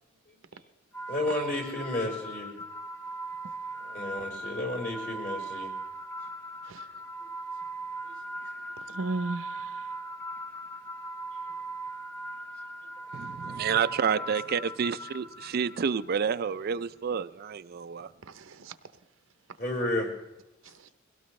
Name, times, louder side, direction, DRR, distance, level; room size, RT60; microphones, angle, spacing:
sound 1, 0.9-16.1, right 2 dB, 10° left, 0.5 m, -39 dB
voice 1, 1.1-2.5 3.8-5.7 13.4-13.5 19.6-20.1, left 1 dB, 55° left, 4.4 m, -32 dB
voice 2, 8.9-9.9 18.3-18.8 20.6-20.9, right 2 dB, 80° right, 0.8 m, -36 dB
voice 3, 13.1-18.1, right 7 dB, 50° right, 0.4 m, -29 dB
22.0 x 17.0 x 3.2 m
head